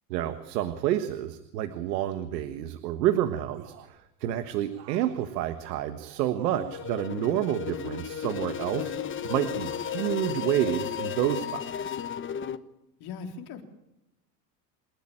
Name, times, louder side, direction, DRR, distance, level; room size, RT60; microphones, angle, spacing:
voice 1, 0.1-8.9 9.2-11.9, right 12 dB, 90° right, 9 dB, 1.5 m, -29 dB
sound 1, 3.5-4.1 4.7-7.0 7.7-8.8 9.4-10.2 10.5-10.7, right 11 dB, 65° right, 2.9 m, -53 dB
sound 2, 6.5-12.6, left 9 dB, 25° left, 1.0 m, -34 dB
voice 2, 13.0-13.6, left 5 dB, 50° left, 3 dB, 3.9 m, -39 dB
27.5 x 11.0 x 8.7 m, 0.92 s
supercardioid pair, 120°, 48 cm